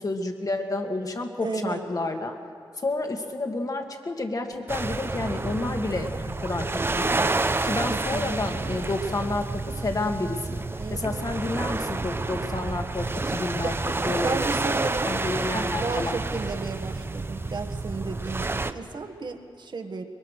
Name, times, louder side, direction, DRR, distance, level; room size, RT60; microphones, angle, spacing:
voice 1, 0.0-2.4 2.8-7.4 7.6-10.6 10.9-14.4 15.1-16.2, left 2 dB, 45° left, 4 dB, 1.9 m, -30 dB
voice 2, 1.4-1.8 7.9-8.9 10.8-11.2 13.6-13.8 14.2-15.3 15.5-20.0, right 3 dB, 60° right, 6 dB, 1.5 m, -33 dB
sound 1, 4.7-18.7, right 3 dB, 25° right, 0.7 m, -29 dB
23.5 x 21.5 x 6.5 m, 2.4 s
wide cardioid pair, 110°, 9 cm